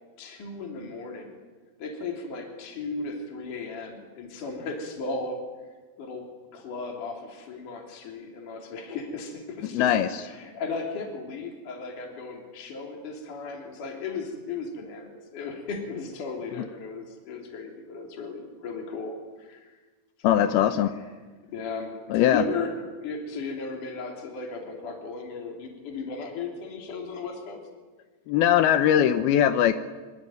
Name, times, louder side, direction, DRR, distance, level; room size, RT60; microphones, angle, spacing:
voice 1, 0.2-1.4 1.8-5.4 6.0-9.9 10.2-19.8 20.2-21.0 21.5-22.7 23.0-27.6, left 4 dB, 55° left, 1 dB, 4.8 m, -36 dB
voice 2, 9.7-10.1 20.2-20.9 22.1-22.4 28.3-29.7, left 10 dB, 85° left, 9 dB, 2.9 m, -20 dB
25.0 x 24.0 x 9.3 m, 1.3 s
omnidirectional pair, 4.3 m